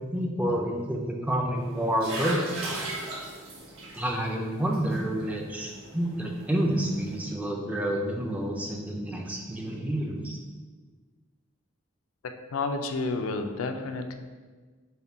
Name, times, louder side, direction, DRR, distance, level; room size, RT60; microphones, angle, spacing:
voice 1, 0.1-2.4 2.6-2.9 3.9-10.4, right 1 dB, 5° right, 0 dB, 0.4 m, -29 dB
sound 1, 1.6-7.2, right 2 dB, 80° right, 1.2 m, -38 dB
voice 2, 12.5-14.1, left 3 dB, 75° left, 6 dB, 0.4 m, -30 dB
5.5 x 2.2 x 4.4 m, 1.4 s
head